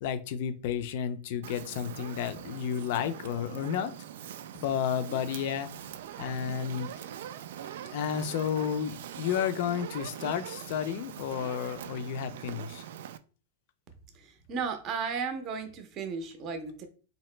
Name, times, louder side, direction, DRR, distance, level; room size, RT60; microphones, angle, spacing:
voice 1, 0.0-3.9 4.6-5.9 6.2-6.9 7.9-12.8, left 8 dB, 50° left, 11 dB, 0.4 m, -32 dB
Fire, 1.4-13.2, right 10 dB, 70° right, 0.3 m, -42 dB
voice 2, 14.5-16.8, right 5 dB, 25° right, 6 dB, 0.6 m, -34 dB
3.9 x 2.8 x 3.2 m, 0.37 s
supercardioid pair, 170°, 0 cm